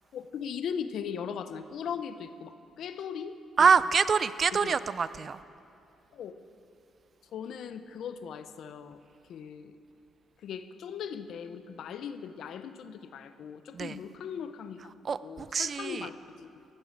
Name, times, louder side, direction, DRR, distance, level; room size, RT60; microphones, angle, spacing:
voice 1, 0.1-3.4 4.5-4.8 6.1-6.3 7.3-9.0 9.3-9.8 10.4-14.8 15.2-16.2, left 7 dB, 70° left, 11 dB, 0.7 m, -38 dB
voice 2, 3.6-5.4 13.7-14.0 15.0-16.1, right 6 dB, 45° right, 15 dB, 0.4 m, -25 dB
15.5 x 6.8 x 8.9 m, 2.6 s
cardioid pair, 90°, 0 cm